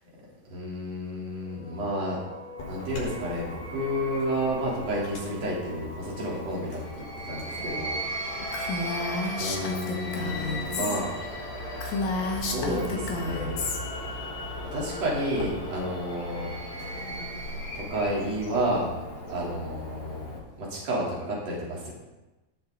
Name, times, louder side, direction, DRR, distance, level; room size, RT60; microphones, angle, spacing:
voice 1, 0.5-2.2 2.7-8.0 9.4-11.1 12.3-13.6 14.7-16.5 17.7-18.9 19.3-21.9, equal, 40° right, -5 dB, 4.4 m, -31 dB
sound 1, 1.4-18.2, equal, 40° left, 3.8 m, -38 dB
Chirp tweet / Buzz, 2.6-20.4, left 1 dB, 85° left, 6.3 m, -40 dB
Female speech woman speaking, 8.5-11.0 11.3-11.4 11.8-13.8, left 3 dB, 60° left, 2.1 m, -31 dB
18.0 x 9.3 x 4.0 m, 1.1 s
omnidirectional pair, 4.8 m